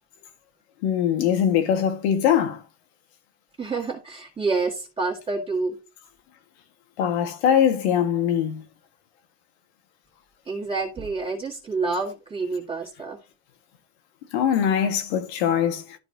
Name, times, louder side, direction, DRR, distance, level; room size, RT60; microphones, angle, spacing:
voice 1, 0.8-2.6 7.0-8.6 14.3-15.8, left 9 dB, 80° left, 1.8 m, -22 dB
voice 2, 3.6-5.8 10.5-13.2, right 4 dB, 15° right, 1.9 m, -28 dB
12.5 x 4.1 x 2.8 m
supercardioid pair, 130°, 32 cm